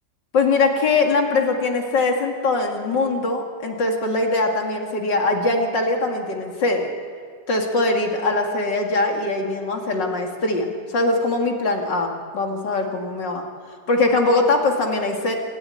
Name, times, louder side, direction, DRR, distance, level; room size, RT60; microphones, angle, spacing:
voice 1, 0.3-6.9 7.5-13.4 13.9-15.3, left 3 dB, 80° left, 2 dB, 3.0 m, -22 dB
28.0 x 12.5 x 10.0 m, 2.1 s
omnidirectional pair, 1.9 m